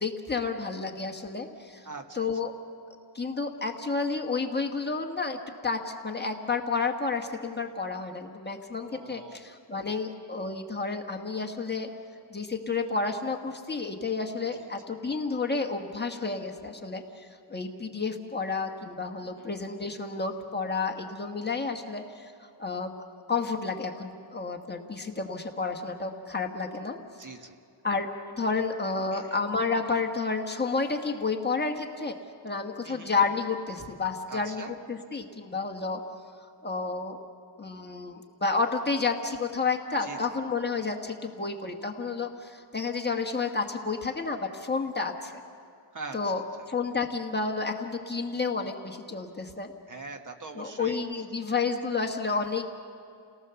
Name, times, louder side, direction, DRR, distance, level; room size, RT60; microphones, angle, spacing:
voice 1, 0.0-1.9 2.1-2.5 3.1-11.9 12.3-22.9 23.3-27.0 27.8-28.1 28.4-32.2 32.4-36.0 36.6-37.2 37.6-45.4 46.1-49.7 50.5-52.7, left 4 dB, 20° left, 3 dB, 1.4 m, -31 dB
voice 2, 1.8-2.3 8.8-9.4 14.5-14.7 19.2-19.5 27.2-27.6 29.1-29.4 32.8-33.1 34.3-34.7 40.0-40.2 45.9-46.3 46.6-46.7 49.9-51.0, right 3 dB, 40° right, 6 dB, 1.4 m, -42 dB
30.0 x 18.0 x 7.0 m, 2.5 s
wide cardioid pair, 150°, 47 cm